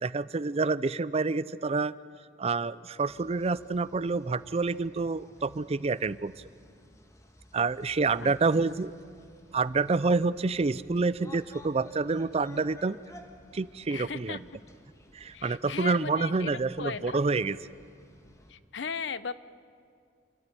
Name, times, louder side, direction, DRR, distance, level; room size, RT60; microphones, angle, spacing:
voice 1, 0.0-1.9 2.4-6.3 7.5-8.9 9.5-13.0 13.5-14.4 15.1-17.6, right 3 dB, 35° right, 18 dB, 0.5 m, -28 dB
sound 1, 3.1-18.5, left 1 dB, 15° left, 1.6 m, -55 dB
voice 2, 13.9-14.4 15.3-17.2 18.5-19.3, left 5 dB, 80° left, 16 dB, 0.7 m, -37 dB
27.5 x 13.5 x 9.9 m, 2.2 s
head